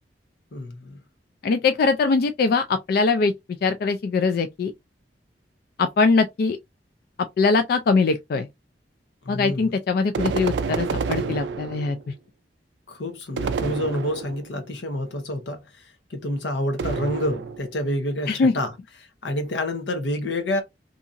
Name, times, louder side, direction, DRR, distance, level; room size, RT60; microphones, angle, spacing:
voice 1, 0.5-1.0 9.2-9.7 12.9-15.8 16.1-18.7 19.2-20.6, left 1 dB, 85° left, 0.9 m, -28 dB
voice 2, 1.4-3.3 3.6-4.7 5.8-6.6 7.4-8.5 9.3-12.0 18.3-18.5, left 4 dB, 55° left, 0.3 m, -21 dB
sound 1, 10.1-12.1 13.4-14.6 16.8-17.8, right 5 dB, 80° right, 0.4 m, -28 dB
2.8 x 2.5 x 2.4 m
head